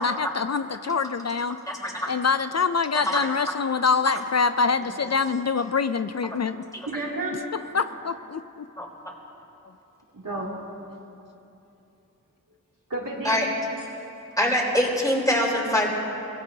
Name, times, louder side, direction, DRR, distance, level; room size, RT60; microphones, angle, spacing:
voice 1, 0.0-1.6 2.1-6.6 7.7-8.4, left 5 dB, 50° left, 11 dB, 0.5 m, -25 dB
voice 2, 1.7-2.1 2.9-3.3 8.8-8.9 13.2-13.5 14.4-15.9, left 1 dB, 10° left, -3 dB, 3.9 m, -24 dB
voice 3, 4.8-5.2 6.9-7.6 10.1-10.6 12.9-13.4, right 2 dB, 75° right, -3 dB, 2.8 m, -32 dB
24.5 x 17.5 x 2.8 m, 2.8 s
wide cardioid pair, 45°, 33 cm